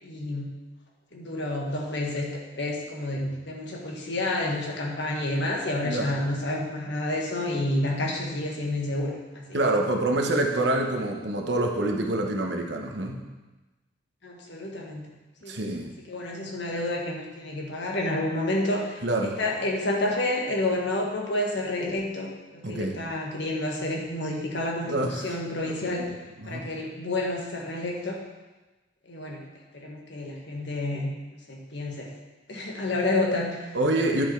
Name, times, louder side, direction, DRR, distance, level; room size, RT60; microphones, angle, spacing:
voice 1, 0.0-0.5 1.1-2.3 2.5-9.6 14.2-15.0 15.4-15.7 16.1-26.1 26.4-28.2 29.1-29.4 29.7-31.1 31.5-32.1 32.5-33.8 34.0-34.2, left 1 dB, 65° left, -1 dB, 1.5 m, -29 dB
voice 2, 9.5-13.2 15.5-15.9 19.0-19.4 22.6-23.0 24.9-25.3 25.6-26.1 26.4-26.7 33.7-34.2, right 1 dB, 65° right, 2 dB, 1.0 m, -26 dB
10.5 x 5.3 x 4.5 m, 1.1 s
head